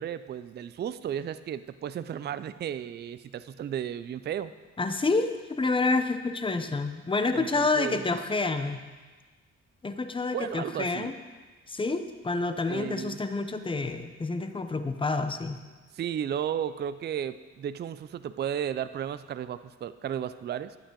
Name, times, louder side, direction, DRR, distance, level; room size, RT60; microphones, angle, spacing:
voice 1, 0.0-4.5 7.3-8.0 10.3-11.1 12.7-13.2 15.9-20.8, right 9 dB, 35° right, 14 dB, 0.4 m, -34 dB
voice 2, 4.8-8.8 9.8-11.1 11.7-15.6, left 3 dB, 15° left, 9 dB, 0.7 m, -28 dB
11.5 x 8.7 x 3.8 m, 1.3 s
cardioid pair, 90°, 30 cm